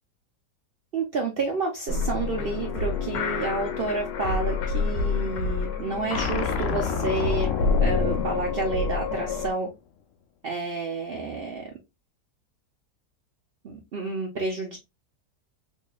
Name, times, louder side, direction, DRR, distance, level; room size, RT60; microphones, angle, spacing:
voice 1, 0.9-7.5 7.8-9.7 10.4-11.7 13.6-14.8, right 3 dB, 85° right, 0 dB, 0.5 m, -30 dB
sound 1, 1.9-9.5, left 4 dB, 85° left, 1.3 m, -28 dB
sound 2, 6.1-9.5, left 6 dB, 70° left, 0.7 m, -29 dB
3.6 x 3.1 x 2.3 m, 0.24 s
omnidirectional pair, 1.8 m